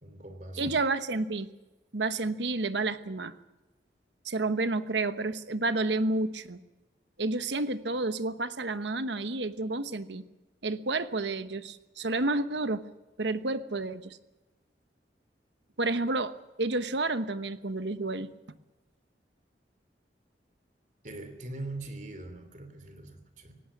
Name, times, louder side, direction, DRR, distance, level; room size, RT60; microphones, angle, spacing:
voice 1, 0.0-0.8 21.0-23.6, right 2 dB, 45° right, 8 dB, 3.1 m, -42 dB
voice 2, 0.6-1.5 1.9-3.3 4.2-6.6 7.2-10.2 10.6-12.8 13.2-14.2 15.8-18.3, right 2 dB, 90° right, 11 dB, 1.2 m, -30 dB
18.0 x 17.5 x 8.6 m, 1.1 s
head